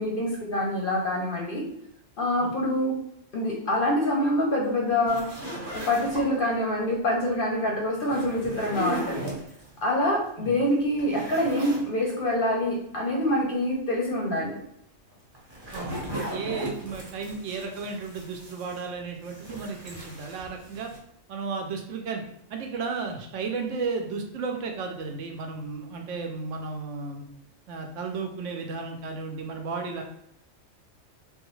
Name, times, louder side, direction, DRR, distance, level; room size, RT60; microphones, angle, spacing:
voice 1, 0.0-1.6 2.2-3.0 3.3-5.3 5.7-9.3 9.8-14.6, left 1 dB, 55° left, -1 dB, 0.6 m, -26 dB
sound 1, 5.1-6.5 7.9-9.7 10.2-10.3 10.7-11.9 12.2-12.3 15.1-18.9 19.2-21.0, equal, 20° right, 0.8 m, -37 dB
voice 2, 15.7-20.9 21.3-22.2 22.5-27.3 27.7-30.0, right 4 dB, 75° right, 3 dB, 0.9 m, -34 dB
3.5 x 2.3 x 3.0 m, 0.73 s
omnidirectional pair, 1.3 m